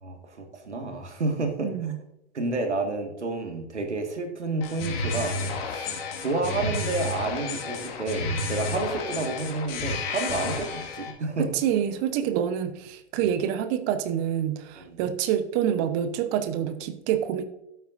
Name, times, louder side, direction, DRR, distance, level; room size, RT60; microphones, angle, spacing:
voice 1, 0.0-1.7 2.3-5.9 6.2-11.5 14.8-15.0, right 3 dB, 85° right, 4 dB, 2.0 m, -30 dB
voice 2, 1.6-2.0 11.4-17.4, right 9 dB, 40° right, 11 dB, 1.1 m, -27 dB
sound 1, 4.6-11.1, left 3 dB, 55° left, 2.1 m, -31 dB
12.0 x 8.8 x 2.6 m, 0.84 s
figure-of-eight pair, 100°, 34 cm